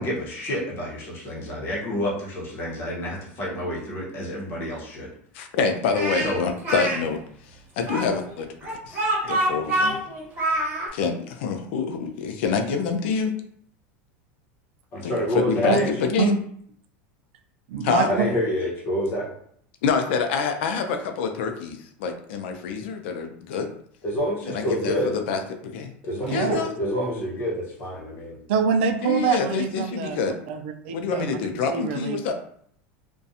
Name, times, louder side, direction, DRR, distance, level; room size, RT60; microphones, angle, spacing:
voice 1, 0.0-5.1 6.2-6.4 14.9-15.9 18.1-19.3 24.0-25.1 26.0-28.4, equal, 40° left, -4 dB, 0.9 m, -28 dB
voice 2, 5.3-7.2 7.8-8.5 8.8-10.0 10.9-13.3 15.0-16.4 17.8-18.1 19.8-23.7 24.5-25.9 26.3-26.7 29.0-30.4 30.9-32.3, left 5 dB, 75° left, 6 dB, 0.4 m, -26 dB
Speech, 5.9-7.0 7.9-10.9, right 1 dB, 25° right, 1.4 m, -25 dB
voice 3, 17.7-18.3 26.3-26.6 28.5-30.2 30.5-31.4 31.7-32.2, right 6 dB, 75° right, 6 dB, 0.4 m, -25 dB
2.4 x 2.2 x 2.7 m, 0.64 s
supercardioid pair, 135°, 6 cm